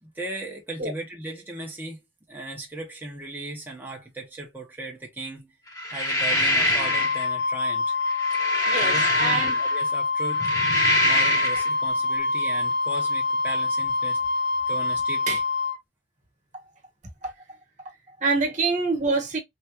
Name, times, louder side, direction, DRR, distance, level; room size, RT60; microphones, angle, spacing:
voice 1, 0.0-2.0 2.3-5.5 5.9-7.9 8.8-10.5 11.0-14.3 14.7-15.4, right 2 dB, 10° right, 0.9 m, -37 dB
sound 1, 5.8-7.2 8.1-9.8 10.3-11.7, left 1 dB, 15° left, 1.0 m, -24 dB
Wind instrument woodwind instrument, 6.8-15.8, left 3 dB, 65° left, 0.6 m, -26 dB
voice 2, 8.6-9.6 15.3-15.4 17.2-17.6 17.8-19.4, right 3 dB, 40° right, 1.3 m, -26 dB
3.4 x 2.5 x 2.8 m
head